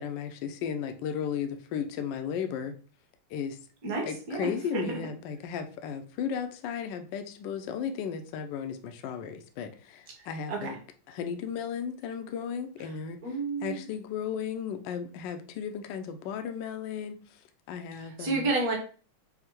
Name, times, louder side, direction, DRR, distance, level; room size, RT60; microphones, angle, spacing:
voice 1, 0.0-2.7 3.3-3.6 4.0-10.8 11.1-17.4 17.7-18.5, left 7 dB, 75° left, 7 dB, 1.1 m, -35 dB
voice 2, 3.8-5.0 10.5-10.7 13.2-13.8 18.2-18.8, right 3 dB, 50° right, 0 dB, 1.3 m, -30 dB
5.6 x 2.1 x 3.0 m, 0.39 s
omnidirectional pair, 2.3 m